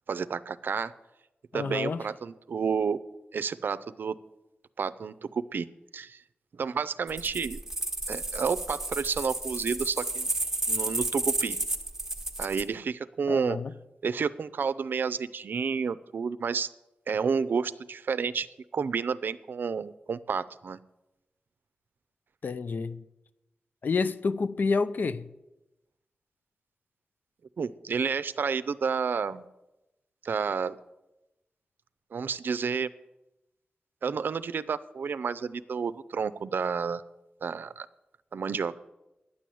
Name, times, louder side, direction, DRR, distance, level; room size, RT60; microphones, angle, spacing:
voice 1, 0.1-0.9 1.5-3.0 3.3-4.2 4.8-5.7 5.9-6.2 6.6-7.6 8.1-10.3 10.7-11.6 12.4-13.6 14.0-16.7 17.1-18.5 18.7-20.8 27.6-29.4 30.2-30.8 32.1-32.9 34.0-37.0 37.4-37.9 38.3-38.8, right 5 dB, 75° right, 0.5 m, -30 dB
voice 2, 1.5-2.0 13.3-13.7 22.4-23.0 23.8-25.3, left 4 dB, 60° left, 0.6 m, -29 dB
sound 1, 7.1-12.6, right 2 dB, 15° right, 1.1 m, -32 dB
10.0 x 9.8 x 7.7 m
wide cardioid pair, 135°, 4 cm